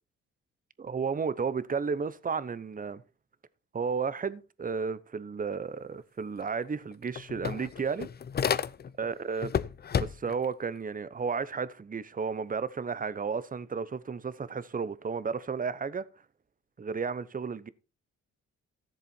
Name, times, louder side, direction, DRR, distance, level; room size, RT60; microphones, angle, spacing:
voice 1, 0.8-3.0 3.7-8.1 9.0-9.5 10.0-16.0 16.8-17.7, right 5 dB, 30° right, 0.9 m, -33 dB
sound 1, 6.4-6.5 6.8-9.1 9.4-10.4, left 7 dB, 35° left, 0.6 m, -31 dB
13.5 x 7.6 x 4.4 m
cardioid pair, 90°, 30 cm